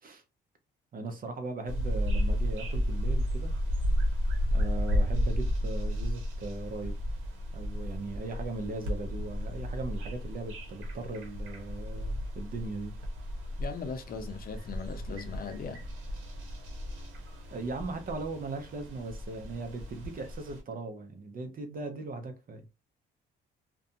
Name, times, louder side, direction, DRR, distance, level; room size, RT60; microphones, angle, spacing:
voice 1, 0.9-3.5 4.5-7.0 7.5-12.9 17.5-22.7, right 3 dB, 45° right, 0.7 m, -38 dB
sound 1, 1.7-20.6, equal, 85° right, 0.9 m, -33 dB
voice 2, 13.6-15.8, left 5 dB, 50° left, 0.6 m, -39 dB
2.5 x 2.2 x 2.6 m
cardioid pair, 90°, 20 cm